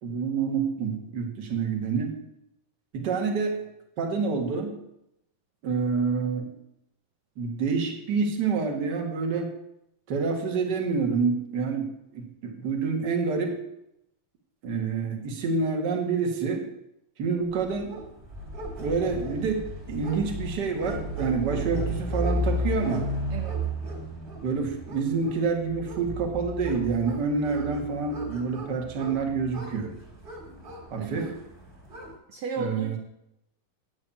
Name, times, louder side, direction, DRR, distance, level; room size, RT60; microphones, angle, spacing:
voice 1, 0.0-2.1 2.9-3.6 4.0-4.7 5.6-6.5 7.4-9.5 10.1-11.9 12.1-13.5 14.6-16.6 17.2-17.9 18.8-23.1 24.4-29.9 30.9-31.3 32.6-33.0, right 5 dB, 40° right, 3 dB, 1.8 m, -27 dB
sound 1, 17.6-32.1, equal, 15° right, 2.5 m, -34 dB
voice 2, 31.0-31.4 32.3-33.0, right 5 dB, 70° right, 5 dB, 1.7 m, -34 dB
9.5 x 7.4 x 8.5 m, 0.82 s
omnidirectional pair, 4.0 m